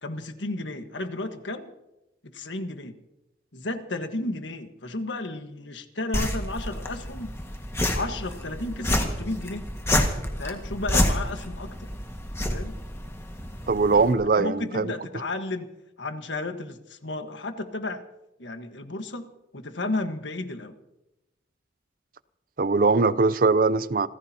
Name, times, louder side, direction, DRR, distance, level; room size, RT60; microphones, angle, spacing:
voice 1, 0.0-1.7 2.2-3.0 3.5-7.3 7.9-9.7 10.4-11.9 12.5-12.8 14.4-15.7 16.0-18.0 18.4-19.3 19.5-20.7, left 2 dB, 85° left, 1.5 m, -33 dB
sound 1, 6.1-14.1, left 1 dB, 15° left, 1.7 m, -29 dB
voice 2, 13.7-14.9 22.6-24.1, right 4 dB, 50° right, 0.5 m, -21 dB
28.5 x 15.0 x 2.9 m
head